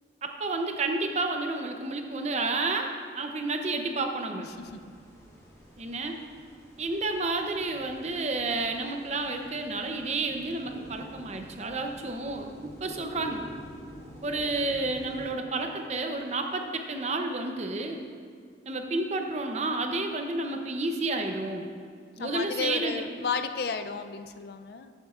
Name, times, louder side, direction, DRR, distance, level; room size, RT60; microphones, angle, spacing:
voice 1, 0.2-4.5 5.8-6.2 6.8-13.5 14.2-18.0 18.7-21.7 22.2-23.0, right 2 dB, 40° right, 4 dB, 0.7 m, -30 dB
sound 1, 4.5-15.3, equal, 15° left, 1.3 m, -49 dB
voice 2, 22.2-24.9, left 5 dB, 60° left, 9 dB, 0.4 m, -33 dB
13.0 x 7.4 x 2.4 m, 2.1 s
head